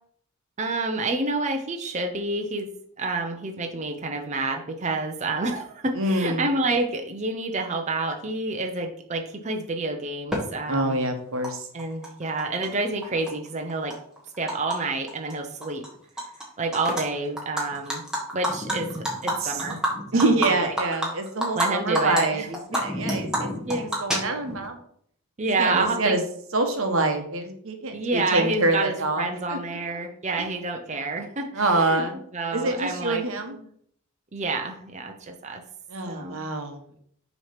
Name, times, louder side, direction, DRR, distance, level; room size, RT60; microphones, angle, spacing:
voice 1, 0.6-2.7 3.0-11.0 11.7-13.9 14.4-15.8 16.6-18.0 18.3-19.8 20.1-20.7 21.5-23.2 23.7-24.0 25.4-26.2 27.9-32.0 32.3-33.7 34.3-35.6 36.1-36.4, right 2 dB, 30° right, 3 dB, 0.6 m, -29 dB
voice 2, 5.9-6.4 10.7-11.7 19.4-19.6 20.1-23.5 23.8-24.8 25.6-26.2 26.5-29.6 31.5-32.2 32.5-33.6 35.9-36.8, right 2 dB, 65° right, 5 dB, 1.0 m, -26 dB
Animal, 10.3-10.4 11.4-11.5 11.8-12.7 13.0-14.8 15.1-15.3 15.6-16.4 16.7-17.0 17.4-21.7 21.9-22.2 22.5-24.6, equal, 5° right, 1.2 m, -28 dB
6.3 x 3.1 x 5.7 m, 0.65 s
head